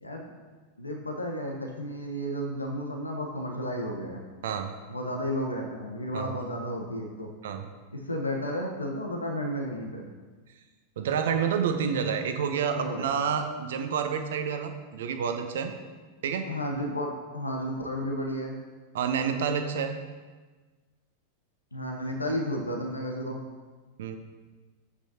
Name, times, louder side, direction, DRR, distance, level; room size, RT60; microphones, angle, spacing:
voice 1, 0.8-4.2 4.9-7.3 7.9-10.0 12.7-13.2 16.5-18.6 21.7-23.4, equal, 80° left, 1 dB, 1.0 m, -32 dB
voice 2, 11.0-15.7 16.2-16.5 18.9-20.0 24.0-24.2, right 7 dB, 60° right, 7 dB, 0.8 m, -29 dB
9.7 x 8.2 x 2.8 m, 1.4 s
figure-of-eight pair, 90°, 0 cm